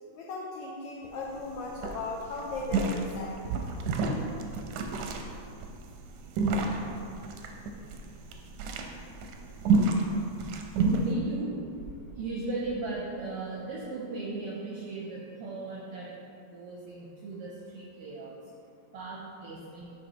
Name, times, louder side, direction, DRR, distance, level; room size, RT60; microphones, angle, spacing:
voice 1, 0.1-3.4, left 3 dB, 85° left, -2 dB, 1.3 m, -37 dB
sound 1, 1.0-1.1 1.4-1.6 1.8-11.1, right 3 dB, 90° right, 2.0 m, -29 dB
voice 2, 10.9-11.5 11.8-16.1 16.5-18.3 18.9-19.9, right 3 dB, 75° right, -5 dB, 1.4 m, -37 dB
8.0 x 5.2 x 3.0 m, 2.5 s
omnidirectional pair, 3.3 m